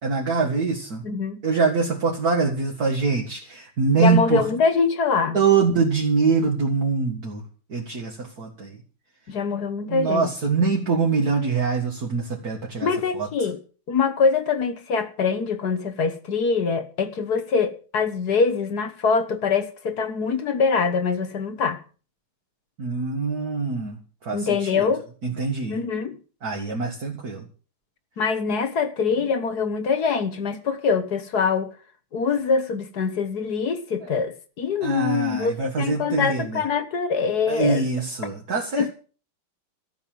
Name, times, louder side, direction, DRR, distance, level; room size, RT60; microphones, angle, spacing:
voice 1, 0.0-1.0 1.4-4.5 5.3-7.4 7.7-8.8 9.9-12.9 13.1-13.3 22.8-24.9 25.2-25.8 26.4-27.4 34.8-36.6 37.5-38.9, right 4 dB, 45° right, 2.2 m, -24 dB
voice 2, 1.0-1.4 4.0-5.4 9.3-10.3 12.8-13.6 13.9-21.8 24.3-25.0 25.7-26.2 28.2-31.7 32.1-37.9 38.8-38.9, left 5 dB, 50° left, 1.5 m, -24 dB
14.0 x 6.8 x 9.1 m
omnidirectional pair, 2.4 m